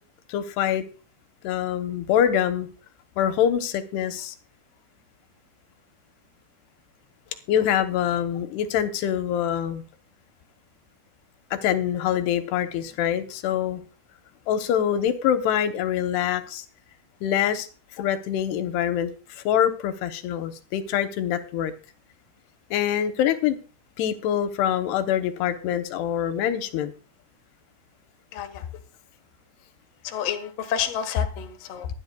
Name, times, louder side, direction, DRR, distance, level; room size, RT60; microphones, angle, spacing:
voice 1, 0.3-0.8 1.4-2.7 3.2-4.3 7.5-9.8 11.5-13.8 14.5-16.7 17.2-17.7 18.0-19.1 19.4-21.7 22.7-23.6 24.0-26.9, left 10 dB, 85° left, 9 dB, 3.0 m, -25 dB
voice 2, 28.3-28.7 30.0-31.9, left 8 dB, 60° left, 4 dB, 1.7 m, -30 dB
24.0 x 9.7 x 2.3 m, 0.34 s
omnidirectional pair, 4.7 m